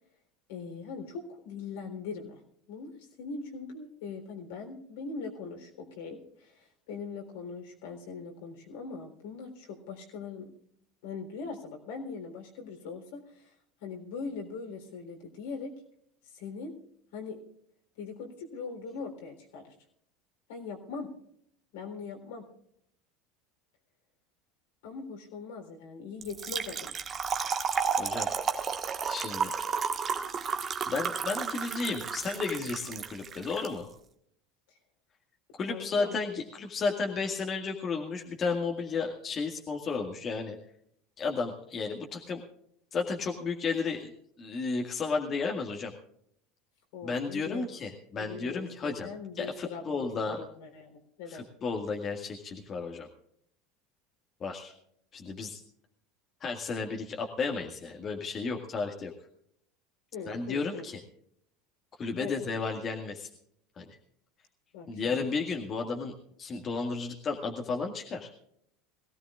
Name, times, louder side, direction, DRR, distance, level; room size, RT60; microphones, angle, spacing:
voice 1, 0.5-2.4 2.7-10.5 11.0-13.5 13.8-15.8 16.2-16.8 17.1-17.4 18.0-19.7 20.5-21.1 21.7-22.4 24.8-26.9 35.7-36.1 46.9-47.7 48.2-51.5 60.1-60.9 62.2-62.4 64.7-65.3, left 4 dB, 70° left, 3 dB, 3.7 m, -41 dB
Trickle dribble / Fill (with liquid), 26.2-33.7, right 6 dB, 35° right, 1.5 m, -32 dB
voice 2, 28.0-28.3 29.0-29.6 30.9-33.9 35.6-40.6 41.2-42.4 42.9-44.1 44.4-45.9 47.0-49.1 49.4-50.4 51.3-53.1 54.4-54.7 55.1-55.6 56.4-59.1 60.3-61.0 62.0-63.3 63.8-64.0 64.9-66.1 66.4-68.3, left 4 dB, 35° left, 2 dB, 2.0 m, -33 dB
22.0 x 16.5 x 2.5 m, 0.69 s
hypercardioid pair, 75°, 0 cm